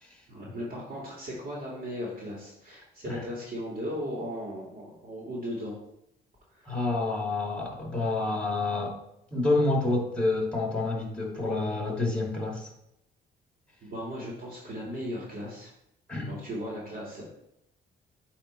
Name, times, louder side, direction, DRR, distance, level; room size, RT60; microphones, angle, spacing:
voice 1, 0.3-5.8 6.5-6.7 13.8-15.7 16.2-17.3, equal, 50° right, -4 dB, 1.9 m, -37 dB
voice 2, 6.7-9.0 9.3-12.7 16.1-16.3, left 2 dB, 5° left, -1 dB, 2.1 m, -28 dB
8.7 x 3.0 x 4.3 m, 0.80 s
cardioid pair, 90°, 20 cm